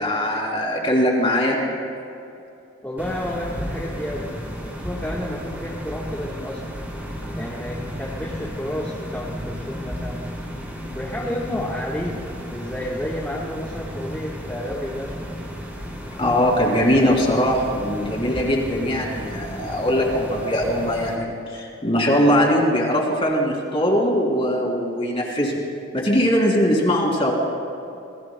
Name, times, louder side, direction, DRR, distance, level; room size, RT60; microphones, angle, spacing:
voice 1, 0.0-1.6 16.2-25.6 25.9-27.3, equal, 25° left, -2 dB, 3.1 m, -21 dB
voice 2, 2.8-4.3 4.6-6.6 7.3-10.2 10.9-15.3, left 1 dB, 10° left, -5 dB, 1.4 m, -31 dB
sound 1, 3.0-21.2, equal, 10° right, 2.6 m, -33 dB
28.5 x 21.0 x 2.2 m, 2.6 s
head